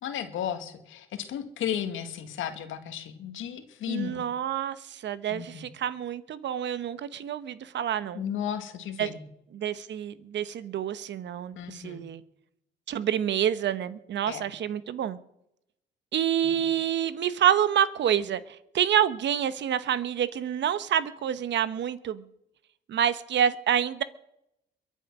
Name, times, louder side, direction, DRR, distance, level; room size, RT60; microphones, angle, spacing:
voice 1, 0.0-4.2 5.3-5.7 8.1-9.3 11.6-12.0 14.3-14.5 16.4-16.5, left 9 dB, 85° left, 8 dB, 1.8 m, -34 dB
voice 2, 3.9-8.2 9.0-9.1 9.5-12.2 12.9-15.2 16.1-22.2 22.9-24.0, right 9 dB, 65° right, 15 dB, 1.0 m, -27 dB
22.5 x 8.3 x 6.1 m, 0.81 s
cardioid pair, 90°, 20 cm